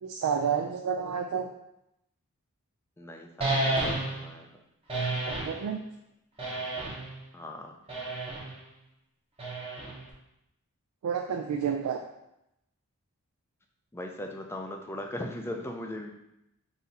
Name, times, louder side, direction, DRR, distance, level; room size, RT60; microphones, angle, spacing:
voice 1, 0.0-1.5 5.3-5.8 11.0-12.0, right 7 dB, 80° right, 3 dB, 0.3 m, -30 dB
voice 2, 3.0-4.5 7.3-7.7 13.9-16.1, left 1 dB, 10° left, 3 dB, 0.3 m, -39 dB
sound 1, 3.4-4.3 4.9-5.6 6.4-7.1 7.9-8.5 9.4-10.1, right 2 dB, 25° right, 0.9 m, -31 dB
4.0 x 2.7 x 4.0 m, 0.85 s
head